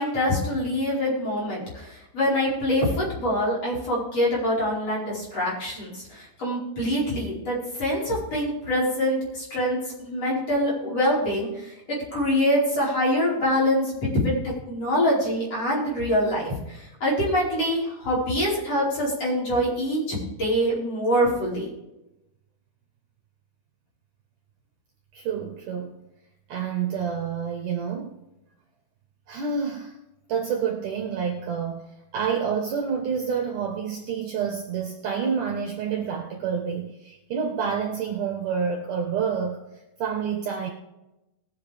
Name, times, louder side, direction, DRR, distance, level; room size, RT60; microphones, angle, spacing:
voice 1, 0.0-21.7, equal, 40° left, -7 dB, 5.7 m, -25 dB
voice 2, 25.1-26.0 26.5-28.2 29.3-29.9 30.3-39.6 40.0-40.7, right 6 dB, 65° right, 3 dB, 2.4 m, -28 dB
20.5 x 7.4 x 3.5 m, 0.93 s
omnidirectional pair, 4.7 m